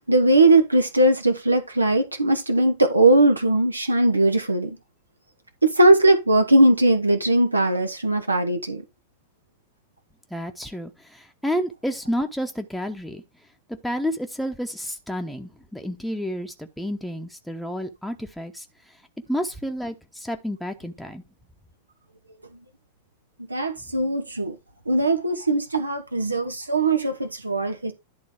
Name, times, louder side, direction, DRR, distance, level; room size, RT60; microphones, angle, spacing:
voice 1, 0.1-4.8 5.6-8.8 23.5-24.5 24.9-27.9, right 2 dB, 80° right, 1.0 m, -19 dB
voice 2, 10.3-13.2 13.8-18.9 19.3-21.2, equal, ahead, 0.9 m, -30 dB
11.0 x 4.0 x 4.7 m
figure-of-eight pair, 90°, 0 cm